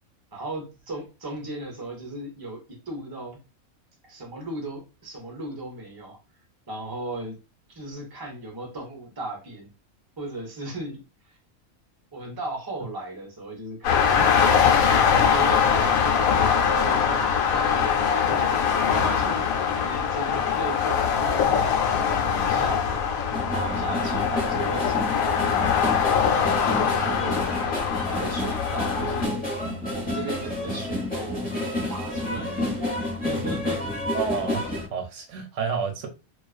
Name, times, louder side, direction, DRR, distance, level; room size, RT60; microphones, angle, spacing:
voice 1, 0.3-3.4 4.0-6.2 6.7-7.4 7.7-9.7 10.2-11.0 12.1-17.2 17.5-18.5 18.9-21.7 21.9-23.1 23.5-26.7 27.0-27.8 28.1-29.3 29.8-31.5 31.9-33.8, right 2 dB, 30° right, 0.4 m, -36 dB
sound 1, 13.8-29.3, left 7 dB, 85° left, 1.0 m, -22 dB
sound 2, 23.3-34.9, left 1 dB, 10° left, 0.8 m, -30 dB
voice 2, 34.1-36.1, right 6 dB, 70° right, 0.9 m, -30 dB
2.3 x 2.3 x 2.3 m
omnidirectional pair, 1.4 m